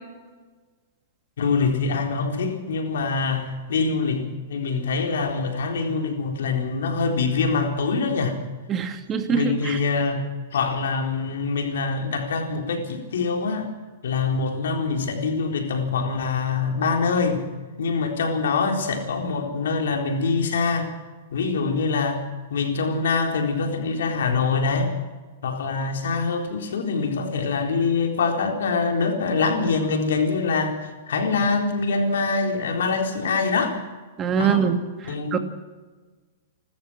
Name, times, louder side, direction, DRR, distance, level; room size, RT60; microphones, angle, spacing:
voice 1, 1.4-8.4 9.3-13.7 14.0-17.5 17.8-20.9 21.3-22.2 22.5-24.9 25.4-30.8 31.1-33.8 34.4-34.6 35.1-35.4, left 4 dB, 75° left, 3 dB, 4.0 m, -24 dB
voice 2, 8.7-9.8 34.2-35.4, right 7 dB, 25° right, 6 dB, 2.4 m, -24 dB
30.0 x 13.5 x 6.3 m, 1.3 s
hypercardioid pair, 125°, 0 cm